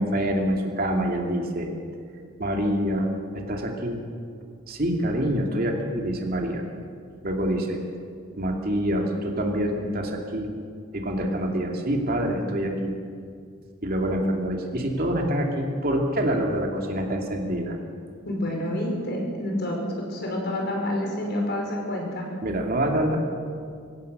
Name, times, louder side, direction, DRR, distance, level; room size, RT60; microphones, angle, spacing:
voice 1, 0.0-1.7 2.4-3.1 3.3-4.0 4.7-6.6 7.2-7.8 8.4-10.5 10.9-12.9 13.8-17.8 22.4-23.2, equal, 45° right, 1 dB, 2.6 m, -26 dB
voice 2, 18.3-22.3, left 1 dB, 50° left, 0 dB, 5.4 m, -28 dB
24.5 x 16.5 x 6.7 m, 2.2 s
head